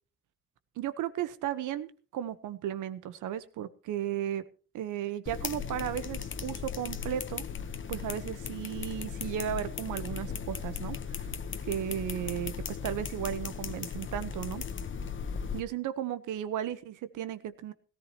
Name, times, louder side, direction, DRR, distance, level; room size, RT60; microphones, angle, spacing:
voice 1, 0.8-4.5 4.7-7.4 7.9-11.3 11.6-14.6 15.5-17.7, right 10 dB, 85° right, 13 dB, 1.2 m, -35 dB
sound 1, 5.3-15.6, left 6 dB, 40° left, 1.1 m, -37 dB
18.0 x 14.0 x 3.0 m, 0.39 s
cardioid pair, 90°, 30 cm